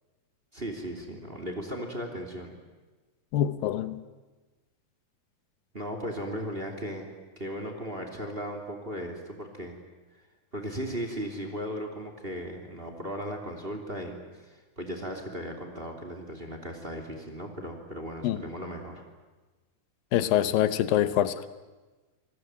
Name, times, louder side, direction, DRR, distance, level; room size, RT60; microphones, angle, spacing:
voice 1, 0.5-2.5 5.7-7.1 7.4-9.8 10.5-19.0, equal, 15° right, 4 dB, 2.7 m, -36 dB
voice 2, 3.3-4.0 18.2-18.4 20.1-21.3, left 11 dB, 85° left, 13 dB, 2.7 m, -25 dB
27.5 x 19.0 x 9.6 m, 1.2 s
omnidirectional pair, 4.0 m